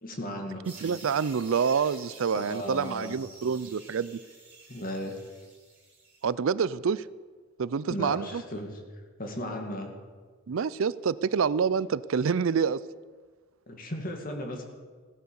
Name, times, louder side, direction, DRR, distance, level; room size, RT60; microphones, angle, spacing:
voice 1, 0.0-0.6 2.3-3.2 4.7-5.2 7.9-8.8 9.2-9.9 13.7-14.6, left 1 dB, 45° left, 3 dB, 2.3 m, -35 dB
sound 1, 0.6-6.2, right 2 dB, 10° right, 5.1 m, -50 dB
voice 2, 0.8-4.2 6.2-7.0 7.6-8.4 10.5-12.8, right 6 dB, 70° right, 18 dB, 0.4 m, -27 dB
16.0 x 10.5 x 7.0 m, 1.5 s
head